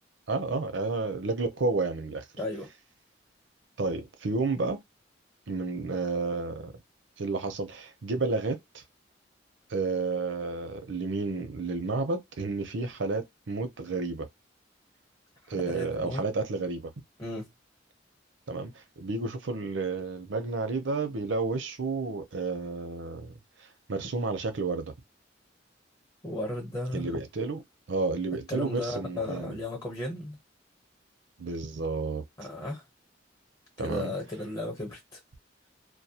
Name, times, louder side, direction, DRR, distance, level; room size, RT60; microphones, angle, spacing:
voice 1, 0.3-2.2 3.8-4.8 5.5-6.7 7.2-8.8 9.7-14.3 15.5-16.9 18.5-23.3 23.9-24.9 26.9-27.6 27.9-29.6 31.4-32.2 33.8-34.1, right 3 dB, 75° right, 0.7 m, -31 dB
voice 2, 2.4-2.7 15.5-16.2 17.2-17.5 26.2-27.1 28.5-30.4 32.4-32.8 33.8-35.2, left 1 dB, 20° left, 0.9 m, -35 dB
2.2 x 2.2 x 2.8 m
head